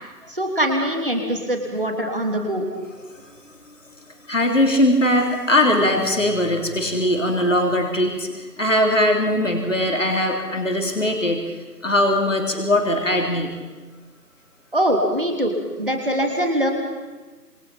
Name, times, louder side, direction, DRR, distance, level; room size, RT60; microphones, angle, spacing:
voice 1, 0.3-2.7 14.7-16.7, equal, 35° right, 3 dB, 3.2 m, -23 dB
voice 2, 4.3-11.4 11.8-13.5, left 1 dB, 50° left, 2 dB, 3.6 m, -20 dB
27.5 x 23.5 x 5.9 m, 1.3 s
figure-of-eight pair, 175°, 48 cm